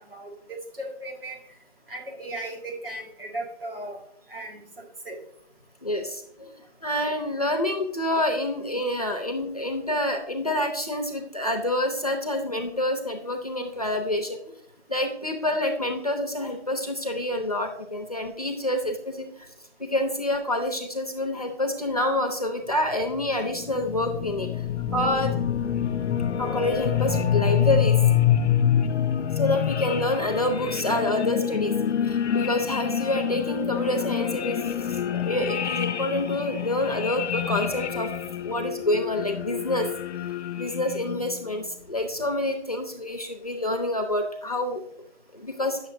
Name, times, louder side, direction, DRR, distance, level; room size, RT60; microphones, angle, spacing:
voice 1, 0.8-1.4 1.9-4.0 4.3-5.2, right 1 dB, 55° right, 1 dB, 1.7 m, -36 dB
voice 2, 5.8-14.4 14.9-19.5 19.8-24.6 24.9-25.4 26.4-28.3 28.9-29.0 29.3-31.7 32.0-34.6 34.9-38.1 38.4-39.9 40.6-44.8 45.3-45.8, left 1 dB, 35° left, 3 dB, 0.6 m, -27 dB
sound 1, 23.0-41.4, left 9 dB, 80° left, 0.5 m, -26 dB
8.9 x 6.4 x 2.6 m, 0.70 s
hypercardioid pair, 175°, 34 cm